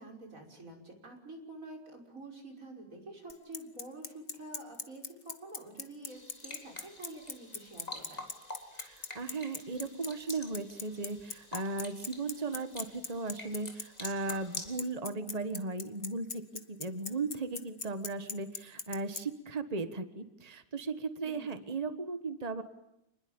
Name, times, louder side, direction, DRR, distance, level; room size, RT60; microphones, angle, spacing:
voice 1, 0.0-8.2 21.2-21.7, right 2 dB, 25° right, 1 dB, 6.1 m, -48 dB
Bicycle, 3.3-19.2, left 4 dB, 40° left, 0.7 m, -39 dB
sound 1, 6.1-14.8, left 2 dB, 10° left, 3.5 m, -48 dB
voice 2, 8.7-22.6, right 3 dB, 60° right, 10 dB, 0.4 m, -37 dB
29.0 x 21.5 x 8.9 m, 0.85 s
omnidirectional pair, 3.5 m